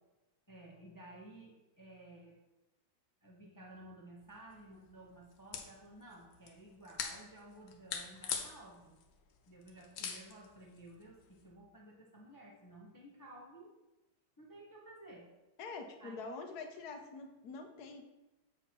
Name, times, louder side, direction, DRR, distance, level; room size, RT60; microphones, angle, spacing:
voice 1, 0.5-2.4 3.2-9.0 9.5-13.7 14.4-15.3 16.0-16.4, right 1 dB, 30° left, -2 dB, 0.3 m, -54 dB
sound 1, 4.2-11.5, left 7 dB, 85° left, 1.6 m, -46 dB
voice 2, 15.6-18.0, left 4 dB, 65° left, 5 dB, 1.1 m, -45 dB
7.9 x 2.8 x 5.9 m, 1.0 s
omnidirectional pair, 2.1 m